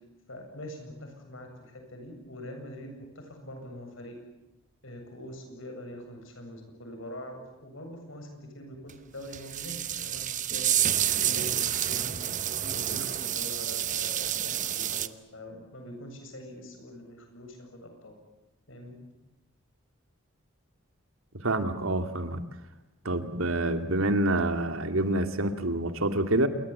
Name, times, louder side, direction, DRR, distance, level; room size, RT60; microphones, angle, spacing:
voice 1, 0.3-4.2 4.8-10.8 11.2-12.4 12.6-18.1 18.7-19.0, left 1 dB, 70° left, 4 dB, 7.9 m, -44 dB
sound 1, 8.9-9.0 9.3-15.1, right 10 dB, 40° right, 1.0 m, -29 dB
voice 2, 21.4-22.4 23.0-26.5, right 1 dB, 90° right, 8 dB, 2.4 m, -27 dB
27.5 x 22.0 x 8.7 m, 0.93 s
head